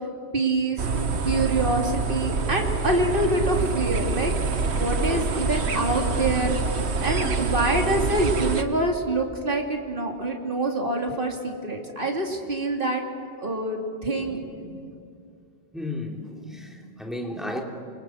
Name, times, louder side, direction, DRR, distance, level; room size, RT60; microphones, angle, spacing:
voice 1, 0.3-0.9 1.2-4.3 4.8-6.6 7.0-13.0 13.4-14.4, right 2 dB, 55° right, 1 dB, 3.0 m, -26 dB
sound 1, 0.8-8.6, right 4 dB, 85° right, 1.5 m, -26 dB
voice 2, 5.1-5.8 14.1-15.0 15.7-17.6, left 1 dB, ahead, 0 dB, 3.4 m, -36 dB
29.0 x 25.5 x 7.7 m, 2.5 s
omnidirectional pair, 1.1 m